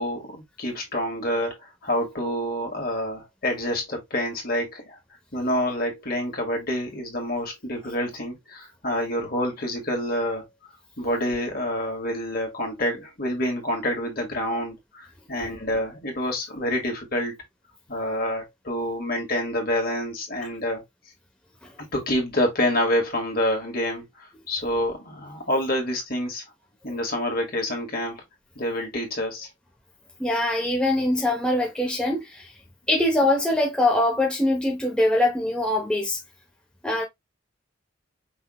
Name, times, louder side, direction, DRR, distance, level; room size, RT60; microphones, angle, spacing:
voice 1, 0.0-5.0 5.3-10.4 11.0-17.4 17.9-20.8 21.9-26.4 26.8-28.2 28.6-29.5, left 1 dB, 50° left, 2.0 m, -27 dB
voice 2, 30.2-32.5 32.9-36.2 36.8-37.0, left 1 dB, 5° left, 1.0 m, -23 dB
5.7 x 3.6 x 2.3 m
head